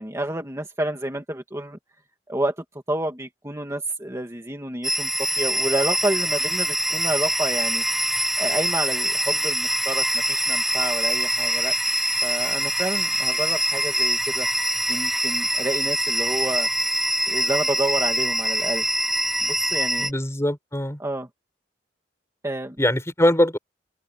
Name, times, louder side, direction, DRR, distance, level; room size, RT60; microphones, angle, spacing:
voice 1, 0.0-1.8 2.3-5.1 5.4-7.8 8.4-11.8 12.2-14.5 14.9-16.7 17.3-18.8 19.4-20.1 21.0-21.3 22.4-22.8, right 1 dB, 15° right, 2.2 m, -29 dB
sound 1, 4.8-20.1, equal, ahead, 0.7 m, -24 dB
voice 2, 20.0-21.0 22.8-23.6, left 1 dB, 15° left, 4.6 m, -22 dB
open air
head